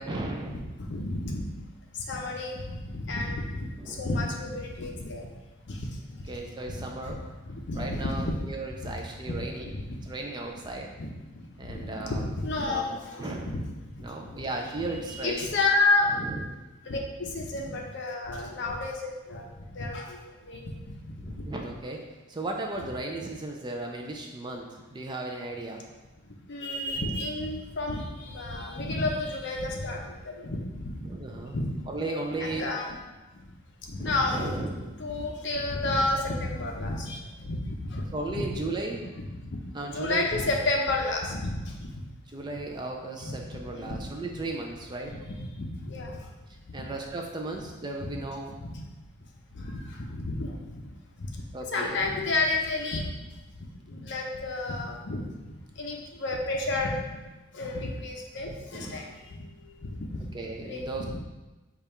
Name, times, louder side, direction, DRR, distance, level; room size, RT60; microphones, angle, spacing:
voice 1, 0.0-0.7 3.8-4.0 6.3-7.2 7.7-9.7 10.1-10.9 11.6-12.3 12.7-13.6 14.0-15.5 16.2-16.4 18.5-18.6 21.2-22.0 22.3-25.9 31.0-31.6 31.9-32.9 34.0-34.9 38.1-39.2 39.7-40.2 42.3-45.1 46.7-48.5 51.5-52.0 58.7-59.1 60.3-61.2, right 2 dB, 20° right, 1 dB, 0.3 m, -35 dB
voice 2, 0.8-1.6 1.9-5.3 5.6-6.4 6.7-7.1 7.4-8.4 8.8-8.9 9.3-9.4 9.6-10.0 11.0-13.9 14.3-14.4 14.9-16.4 16.8-20.7 21.0-21.5 26.5-31.0 31.3-32.9 33.3-33.5 33.9-34.7 35.0-38.7 39.2-39.6 39.9-42.0 43.2-43.4 43.7-44.0 45.2-46.3 48.0-48.1 48.6-48.9 49.5-50.8 51.2-51.4 51.7-53.1 53.9-56.9 57.5-60.2 60.6-61.2, left 2 dB, 55° left, 1 dB, 0.6 m, -31 dB
5.2 x 2.4 x 4.3 m, 1.1 s
head